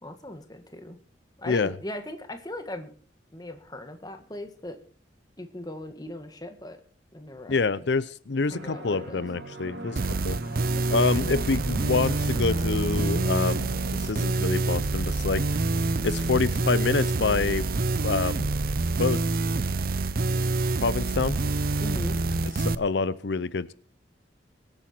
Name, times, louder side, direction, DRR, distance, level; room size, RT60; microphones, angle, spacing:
voice 1, 0.0-1.0 1.4-2.9 3.3-4.8 5.4-6.8 7.1-7.9 8.3-9.3 10.9-11.0 21.8-22.2, left 1 dB, 20° left, 7 dB, 1.8 m, -39 dB
voice 2, 7.5-10.0 10.3-10.4 10.9-13.7 14.0-15.4 16.0-17.7 18.0-18.5 19.0-19.2 20.8-21.4 22.6-23.7, left 4 dB, 70° left, 17 dB, 0.6 m, -26 dB
sound 1, 8.5-14.3, right 1 dB, 75° right, 4.1 m, -38 dB
sound 2, 10.0-22.8, right 3 dB, 50° right, 0.6 m, -26 dB
23.5 x 9.0 x 4.5 m, 0.43 s
head